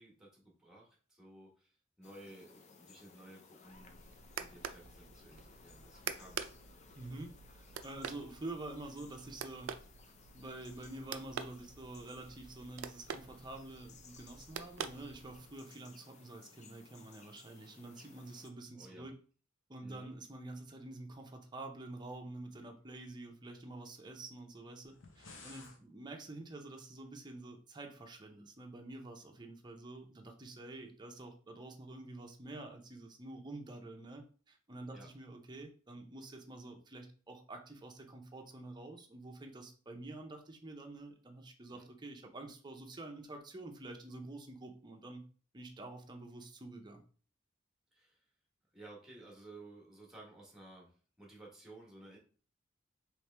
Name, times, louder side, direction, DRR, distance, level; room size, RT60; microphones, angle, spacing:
voice 1, 0.0-6.6 18.7-19.1 19.8-20.2 34.9-35.1 41.7-41.9 47.9-48.2 48.7-52.2, right 2 dB, 5° right, -3 dB, 1.1 m, -55 dB
sound 1, 2.0-18.5, left 5 dB, 35° left, 0.4 m, -61 dB
sound 2, 3.7-15.6, right 7 dB, 80° right, 0.3 m, -47 dB
voice 2, 7.0-9.7 10.3-19.1 19.7-45.2 45.5-47.0, right 2 dB, 20° right, 3 dB, 0.6 m, -48 dB
sound 3, 24.8-25.8, left 3 dB, 80° left, 0.8 m, -53 dB
3.2 x 3.1 x 3.3 m, 0.41 s
head